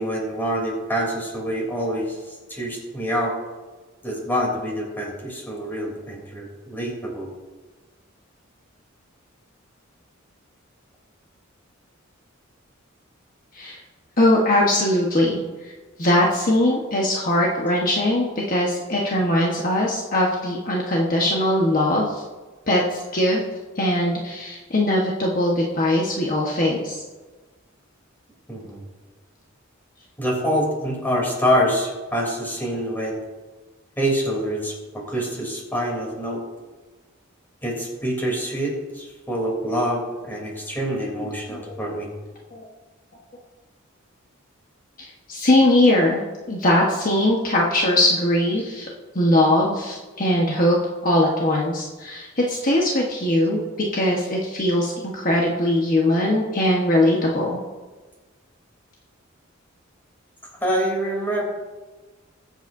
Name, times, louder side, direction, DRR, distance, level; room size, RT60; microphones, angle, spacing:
voice 1, 0.0-3.3 4.0-7.3 28.5-28.8 30.2-33.2 34.0-36.4 37.6-42.1 60.6-61.4, equal, 10° left, -2 dB, 3.2 m, -26 dB
voice 2, 14.2-15.7 16.0-22.2 22.7-23.4 23.8-27.0 40.8-41.8 42.5-42.7 45.3-46.2 46.5-48.9 49.1-50.8 51.0-57.6, left 1 dB, 40° left, -3 dB, 1.3 m, -21 dB
21.5 x 8.0 x 2.7 m, 1.3 s
head